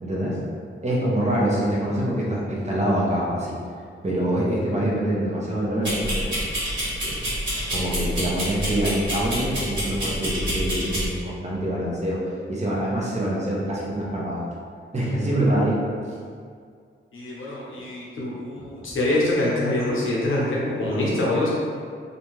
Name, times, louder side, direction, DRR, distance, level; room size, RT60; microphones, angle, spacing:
voice 1, 0.0-0.4 0.8-3.6 4.0-6.3 7.0-7.2 7.7-12.2 12.5-14.4 14.9-16.2 18.6-18.7, right 1 dB, 35° right, -5 dB, 0.6 m, -25 dB
sound 1, 5.8-11.1, equal, 60° right, 1.3 m, -27 dB
voice 2, 17.1-21.5, left 1 dB, 75° left, -6 dB, 0.8 m, -25 dB
2.5 x 2.2 x 3.1 m, 2.1 s
wide cardioid pair, 105°, 21 cm